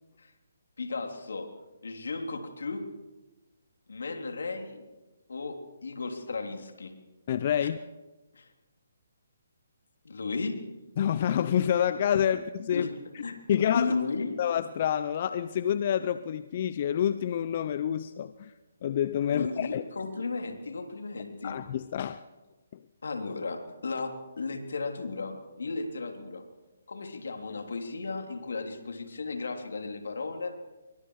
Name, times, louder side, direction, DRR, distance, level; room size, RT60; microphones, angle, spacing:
voice 1, 0.8-1.5 1.8-2.8 3.9-4.8 5.3-6.9 7.6-7.7 8.3-8.5 10.0-10.6 12.7-12.9 13.2-13.4 13.7-14.4 19.3-21.6 23.0-26.4 26.9-30.5, left 4 dB, 75° left, 5 dB, 3.5 m, -34 dB
voice 2, 7.3-7.8 11.0-12.9 13.1-13.2 13.5-13.9 14.4-18.5 18.8-19.8 21.4-22.2, left 9 dB, 45° left, 13 dB, 0.7 m, -28 dB
26.5 x 23.0 x 4.9 m, 1.1 s
hypercardioid pair, 150°, 0 cm